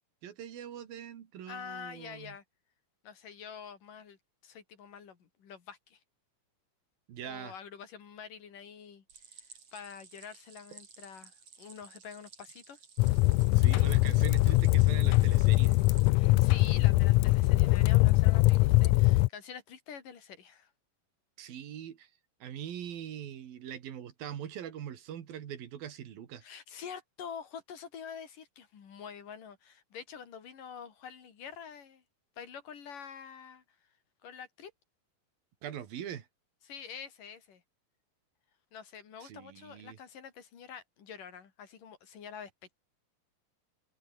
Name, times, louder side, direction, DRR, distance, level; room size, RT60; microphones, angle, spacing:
voice 1, 0.2-2.4 7.1-7.5 13.6-15.8 21.4-22.1 22.4-26.4 35.6-36.3 39.2-40.0, right 9 dB, 80° right, 3.9 m, -42 dB
voice 2, 1.5-2.4 3.0-4.2 4.4-6.0 7.2-9.5 9.7-12.8 16.1-20.7 26.4-32.0 32.4-33.6 34.2-34.7 36.6-37.6 38.7-42.7, left 7 dB, 65° left, 4.5 m, -46 dB
Stream, 9.1-16.1, right 6 dB, 45° right, 4.2 m, -55 dB
sound 1, 13.0-19.3, left 20 dB, 90° left, 1.8 m, -23 dB
omnidirectional pair, 4.1 m